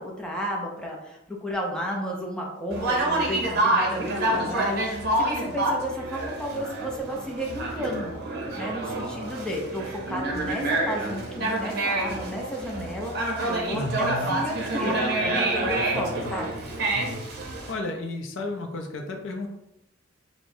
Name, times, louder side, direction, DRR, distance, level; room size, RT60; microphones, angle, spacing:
voice 1, 0.0-8.2 8.6-16.7, equal, 5° left, -2 dB, 0.5 m, -32 dB
Conversation, 2.7-17.7, right 2 dB, 55° right, 0.8 m, -28 dB
voice 2, 13.7-14.3 15.9-16.3 16.9-17.2 17.7-19.5, left 2 dB, 70° left, 2 dB, 0.5 m, -33 dB
4.5 x 2.1 x 2.6 m, 0.87 s
head